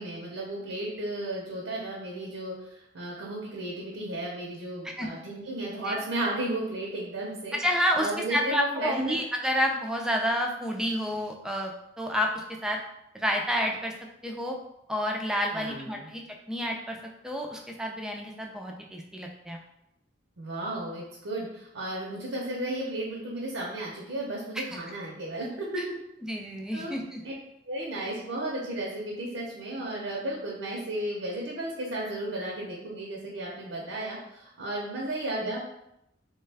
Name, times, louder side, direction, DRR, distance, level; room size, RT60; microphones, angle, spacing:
voice 1, 0.0-7.5 8.0-9.2 15.5-16.1 20.4-25.8 26.7-26.9 27.2-27.3 27.7-35.6, right 1 dB, 90° right, -4 dB, 0.6 m, -34 dB
voice 2, 7.5-12.8 13.1-13.9 14.2-14.5 14.9-16.2 16.5-17.0 17.2-19.6 24.5-24.8 26.2-27.2 35.4-35.5, equal, 5° right, 1 dB, 0.3 m, -29 dB
3.1 x 2.2 x 3.3 m, 0.82 s
head